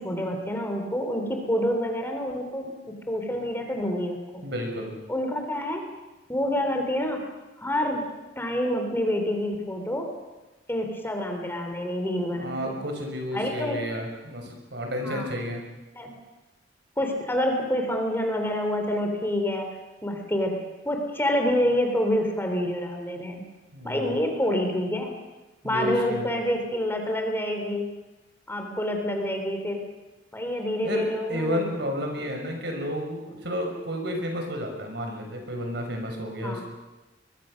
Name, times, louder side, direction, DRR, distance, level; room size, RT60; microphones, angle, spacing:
voice 1, 0.0-4.4 5.1-5.8 6.3-7.2 7.6-8.0 8.4-10.1 10.7-12.8 13.3-13.8 15.0-15.3 16.0-16.1 17.0-19.7 20.0-20.6 20.9-23.4 23.8-25.2 25.6-27.9 28.5-29.8 30.3-31.7 36.4-36.6, left 1 dB, 15° left, 3 dB, 3.4 m, -27 dB
voice 2, 4.4-4.9 12.3-15.6 23.7-24.2 25.6-26.3 30.8-36.6, equal, 65° right, 3 dB, 5.8 m, -31 dB
24.5 x 22.0 x 6.5 m, 1.1 s
head